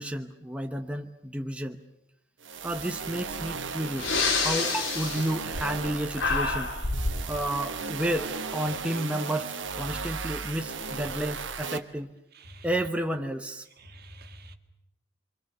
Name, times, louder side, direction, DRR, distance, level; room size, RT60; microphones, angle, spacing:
voice 1, 0.0-1.8 2.6-4.1 4.4-6.7 7.3-12.1 12.6-13.7, right 1 dB, 5° right, 1.0 m, -31 dB
sound 1, 2.4-11.8, right 5 dB, 75° right, 1.5 m, -36 dB
Breathing, 3.3-3.4 3.9-5.9 6.1-7.2, left 3 dB, 85° left, 4.0 m, -28 dB
voice 2, 13.8-14.5, right 1 dB, 55° right, 1.9 m, -47 dB
29.0 x 24.5 x 6.8 m
head